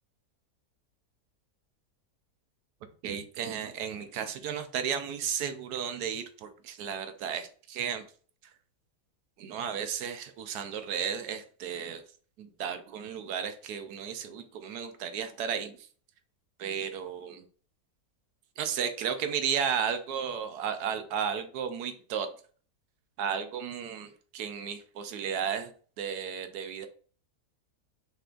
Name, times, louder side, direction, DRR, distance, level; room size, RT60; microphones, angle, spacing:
voice 1, 3.0-8.1 9.4-12.0 12.4-15.9 16.6-17.5 18.6-22.3 23.2-26.9, right 8 dB, 85° right, 8 dB, 1.2 m, -34 dB
5.8 x 2.5 x 3.7 m, 0.43 s
omnidirectional pair, 1.7 m